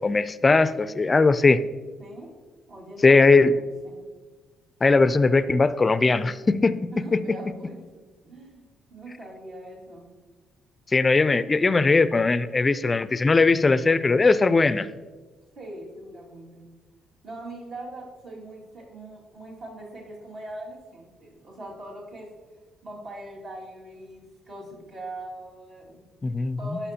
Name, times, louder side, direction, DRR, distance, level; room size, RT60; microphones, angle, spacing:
voice 1, 0.0-1.6 3.0-3.6 4.8-7.4 10.9-14.9 26.2-26.8, left 3 dB, 30° left, 14 dB, 0.4 m, -20 dB
voice 2, 2.0-2.3 2.7-4.1 6.9-10.1 15.5-16.7 17.2-22.3 22.8-26.1 26.6-26.9, right 1 dB, 70° right, -4 dB, 2.2 m, -41 dB
11.5 x 5.5 x 2.8 m, 1.3 s
cardioid pair, 90°, 0 cm